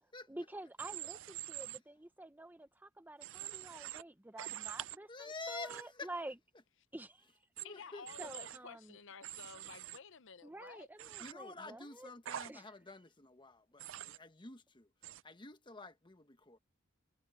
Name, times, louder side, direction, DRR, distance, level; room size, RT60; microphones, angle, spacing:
voice 1, 0.3-6.3 6.9-7.3 8.2-9.0 10.4-12.1 12.5-12.7, right 1 dB, 10° right, 0.7 m, -49 dB
Human voice / Train, 0.8-1.8 3.2-4.0 4.4-5.0 5.7-5.8 7.6-7.7 8.1-8.6 9.2-10.0 11.0-11.3 12.3-12.5 13.8-14.2 15.0-15.2, right 13 dB, 65° right, 0.5 m, -45 dB
voice 2, 5.1-6.1 7.6-8.3 11.2-14.9 15.2-16.6, left 3 dB, 25° left, 1.2 m, -49 dB
voice 3, 7.6-11.1, left 5 dB, 65° left, 0.7 m, -53 dB
head